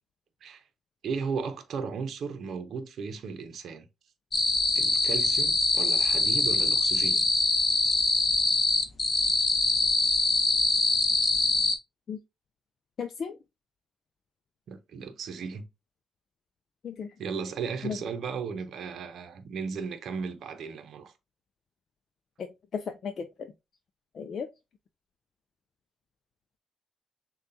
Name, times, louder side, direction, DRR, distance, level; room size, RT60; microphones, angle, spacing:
voice 1, 1.0-3.9 4.8-7.2 14.7-15.6 17.2-21.1, right 5 dB, 70° right, 0.7 m, -35 dB
sound 1, 4.3-11.8, left 3 dB, 35° left, 0.9 m, -24 dB
voice 2, 13.0-13.4 16.8-17.1 17.8-18.0 22.4-22.5 22.7-23.3 24.2-24.5, left 6 dB, 60° left, 0.4 m, -34 dB
6.6 x 2.3 x 2.7 m
cardioid pair, 70°, 0 cm